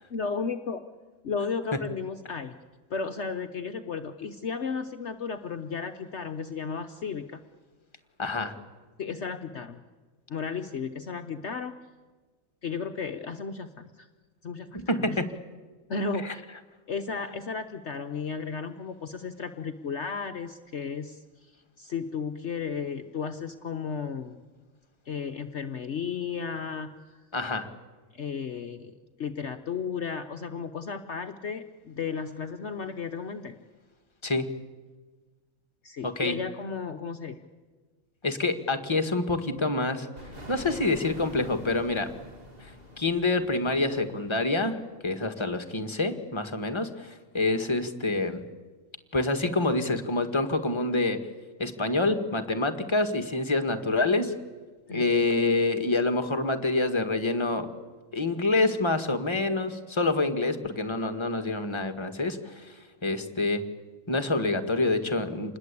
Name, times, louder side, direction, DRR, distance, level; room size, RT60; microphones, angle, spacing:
voice 1, 0.1-0.9 1.2-2.5 2.9-7.4 9.0-9.8 10.3-11.8 12.6-14.1 14.4-15.2 15.9-16.4 16.9-21.2 21.8-24.4 25.1-27.2 28.1-33.6 35.8-37.4 54.9-55.1, left 5 dB, 55° left, 8 dB, 1.2 m, -34 dB
voice 2, 8.2-8.6 14.7-15.3 16.2-16.3 27.3-27.7 34.2-34.5 36.0-36.4 38.2-40.1 40.5-42.1 42.6-42.7 43.0-48.4 49.1-51.2 51.6-54.3 54.9-57.7 58.1-62.8 63.0-63.6 64.1-65.6, left 2 dB, 20° left, 7 dB, 1.6 m, -27 dB
sound 1, 40.2-44.8, equal, 40° right, 3.3 m, -45 dB
27.0 x 20.5 x 8.4 m, 1.4 s
omnidirectional pair, 1.5 m